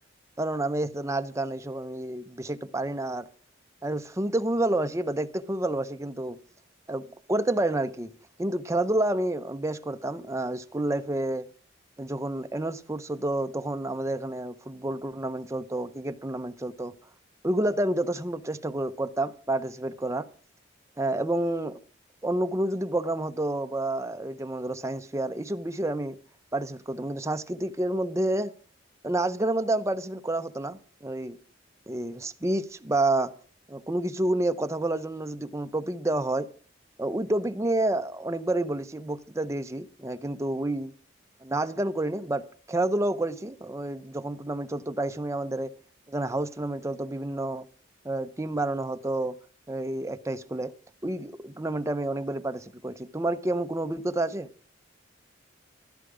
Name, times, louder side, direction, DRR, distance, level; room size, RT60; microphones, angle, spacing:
voice 1, 0.4-3.3 3.8-6.4 6.9-8.1 8.4-11.5 12.0-16.9 17.4-20.3 21.0-21.8 22.2-26.2 26.5-28.5 29.0-31.4 31.9-33.3 33.7-36.5 37.0-40.9 41.4-45.7 46.1-47.7 48.0-49.3 49.7-50.7 51.0-54.5, right 1 dB, 15° right, 0.7 m, -29 dB
15.0 x 12.5 x 4.9 m
head